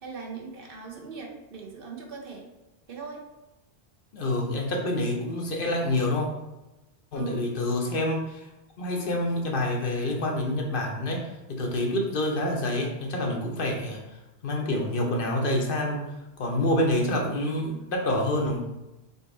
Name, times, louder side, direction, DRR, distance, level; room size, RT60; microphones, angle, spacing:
voice 1, 0.0-2.4 2.9-3.2 7.1-7.5, right 5 dB, 60° right, 1 dB, 0.9 m, -39 dB
voice 2, 4.1-6.3 7.1-8.5 8.8-14.0 14.4-18.6, left 1 dB, 60° left, 0 dB, 0.8 m, -27 dB
3.9 x 2.5 x 3.7 m, 0.99 s
omnidirectional pair, 1.1 m